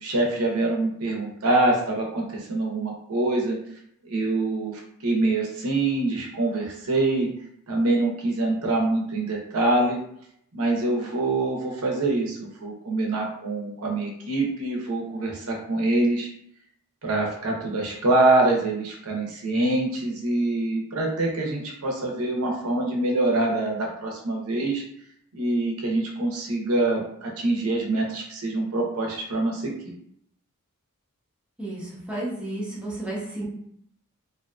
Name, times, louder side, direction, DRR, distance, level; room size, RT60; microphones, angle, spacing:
voice 1, 0.0-3.6 4.0-7.3 7.7-10.0 10.5-16.3 17.0-24.8 25.3-29.7, right 2 dB, 75° right, 0 dB, 0.6 m, -25 dB
voice 2, 31.6-33.5, right 1 dB, 5° right, -6 dB, 0.7 m, -32 dB
2.6 x 2.4 x 2.2 m, 0.69 s
head